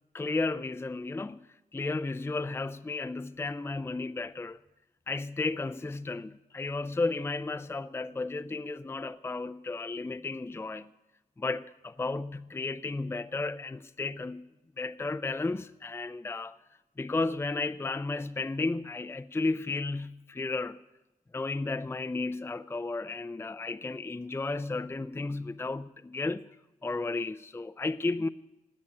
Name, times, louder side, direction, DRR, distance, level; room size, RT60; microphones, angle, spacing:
voice 1, 0.1-4.6 5.1-10.9 11.4-14.5 14.8-16.6 17.0-20.8 21.3-26.5 26.8-28.3, left 3 dB, 15° left, 0.5 m, -33 dB
16.5 x 9.6 x 8.7 m
cardioid pair, 85°, 14 cm